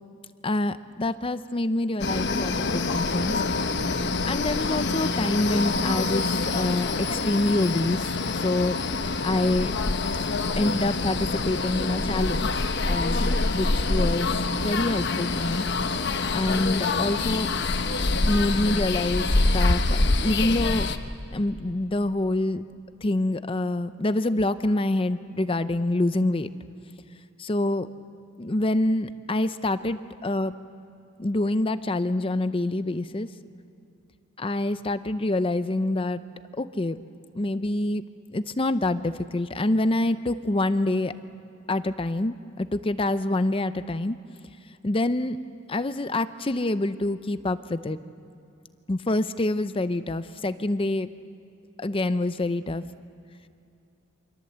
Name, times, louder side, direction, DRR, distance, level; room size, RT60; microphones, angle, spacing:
voice 1, 0.4-3.3 4.2-8.0 8.4-8.8 9.2-9.7 10.6-14.3 14.6-15.7 16.3-17.5 18.3-20.9 21.3-22.6 23.0-26.5 27.4-27.9 28.4-30.5 31.2-33.3 34.4-36.2 36.5-37.0 37.3-38.0 38.3-41.1 41.7-44.2 44.8-45.4 45.7-48.0 48.9-51.1 51.8-52.8, left 2 dB, 25° left, 12 dB, 0.6 m, -26 dB
sound 1, 2.0-21.0, left 3 dB, 55° left, 1.1 m, -26 dB
28.0 x 25.0 x 7.9 m, 2.6 s
head